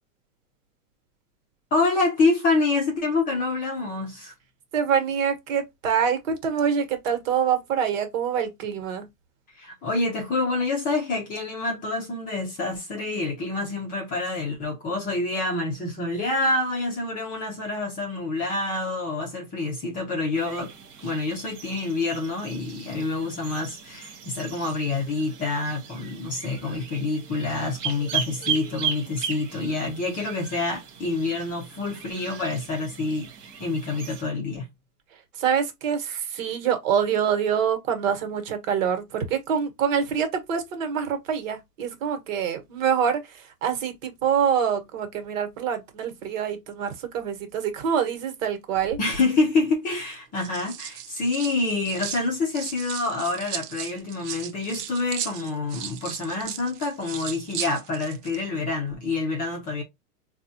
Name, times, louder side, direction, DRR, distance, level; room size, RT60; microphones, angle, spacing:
voice 1, 1.7-4.3 9.6-20.7 21.0-33.3 33.6-34.7 49.0-59.8, left 3 dB, 20° left, 0.7 m, -27 dB
voice 2, 4.7-9.0 35.4-49.0, right 7 dB, 55° right, 1.4 m, -25 dB
sound 1, 20.3-34.2, right 7 dB, 25° right, 0.7 m, -37 dB
sound 2, 48.7-49.3 50.1-52.2 52.5-58.4 58.7-58.9, right 10 dB, 75° right, 0.8 m, -37 dB
3.9 x 2.4 x 2.7 m
hypercardioid pair, 145°, 47 cm